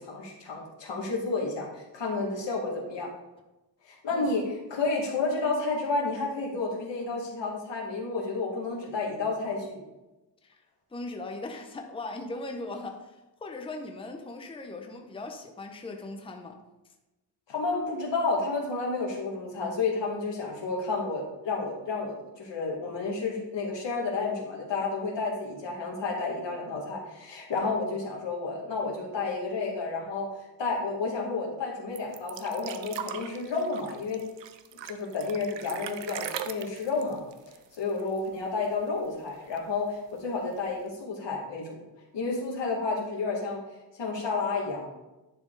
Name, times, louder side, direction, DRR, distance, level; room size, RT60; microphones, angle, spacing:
voice 1, 0.0-3.1 3.9-9.8 17.5-30.3 30.6-34.2 34.8-37.2 37.7-41.8 42.1-43.6 44.0-44.9, left 3 dB, 85° left, -1 dB, 1.9 m, -31 dB
voice 2, 10.9-16.6, left 2 dB, 15° left, 3 dB, 0.6 m, -39 dB
sound 1, 31.9-38.4 38.6-38.7 39.0-39.8 40.6-40.7, right 9 dB, 85° right, 0.6 m, -40 dB
10.0 x 4.3 x 3.9 m, 1.0 s
wide cardioid pair, 145°, 42 cm